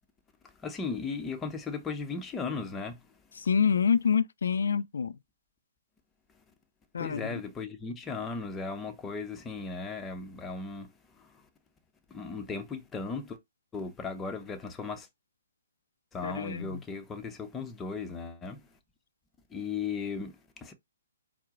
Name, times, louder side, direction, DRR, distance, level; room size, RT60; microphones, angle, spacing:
voice 1, 0.6-3.0 7.0-10.9 11.2-11.5 12.1-13.4 13.7-15.1 16.1-18.6 19.5-20.7, left 4 dB, 15° left, 0.7 m, -36 dB
voice 2, 3.4-5.2 6.9-7.4 16.2-16.8, left 6 dB, 75° left, 0.3 m, -27 dB
4.5 x 2.0 x 3.7 m
hypercardioid pair, 140°, 0 cm